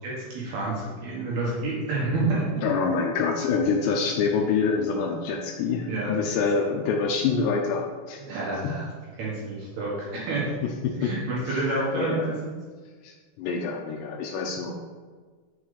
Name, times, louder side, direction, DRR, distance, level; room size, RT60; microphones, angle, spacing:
voice 1, 0.0-2.6 5.9-6.2 8.2-8.9 9.2-10.5 11.0-12.3, right 2 dB, 60° right, -5 dB, 3.0 m, -29 dB
voice 2, 2.6-8.2 8.6-8.7 10.6-11.1 11.5-12.3 13.0-14.7, left 5 dB, 80° left, 2 dB, 2.5 m, -26 dB
7.1 x 5.9 x 6.6 m, 1.5 s
omnidirectional pair, 5.9 m